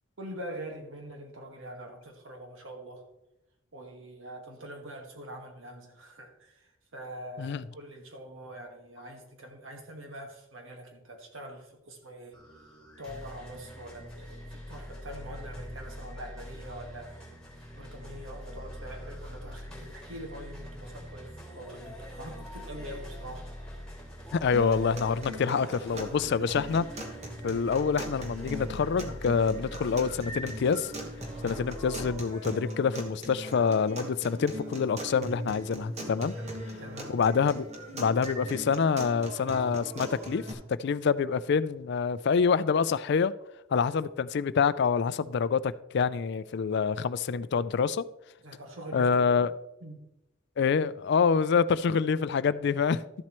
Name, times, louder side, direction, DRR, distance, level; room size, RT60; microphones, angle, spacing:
voice 1, 0.2-3.0 3.7-6.7 6.9-12.4 13.0-17.2 17.7-21.3 21.5-23.5 36.4-36.5 36.8-37.1 48.4-49.5 49.8-50.0, right 1 dB, 75° right, 1.6 m, -44 dB
sound 1, 12.3-32.1, equal, 5° left, 3.2 m, -44 dB
voice 2, 24.3-27.1 27.4-30.9 31.4-36.3 37.1-37.7 37.9-43.3 43.7-48.1 48.9-49.5 50.6-53.0, left 5 dB, 60° left, 0.4 m, -26 dB
sound 2, 24.5-40.5, right 1 dB, 35° right, 1.4 m, -40 dB
13.0 x 7.4 x 3.0 m
head